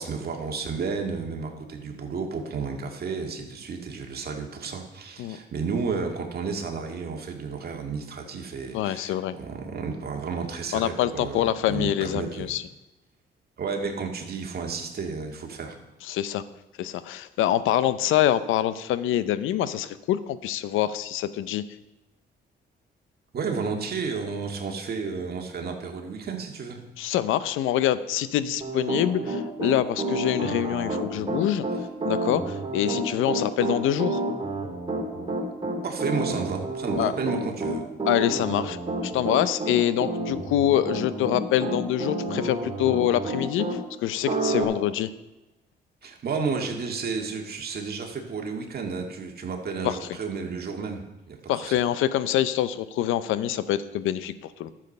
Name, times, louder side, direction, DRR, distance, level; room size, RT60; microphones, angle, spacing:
voice 1, 0.0-12.5 13.6-15.8 23.3-26.8 35.8-37.8 46.0-51.4 51.6-51.8, right 5 dB, 50° right, 2 dB, 2.0 m, -32 dB
voice 2, 8.7-9.3 10.7-12.6 16.1-16.4 16.8-21.6 27.0-31.6 32.0-34.2 37.0-37.1 38.1-38.8 39.0-45.1 49.8-50.0 51.5-54.7, left 12 dB, 85° left, 14 dB, 0.6 m, -25 dB
Piano, 28.6-43.8 44.3-44.6, right 2 dB, 25° right, 3.1 m, -29 dB
12.0 x 7.5 x 5.5 m, 1.0 s
cardioid pair, 90°, 20 cm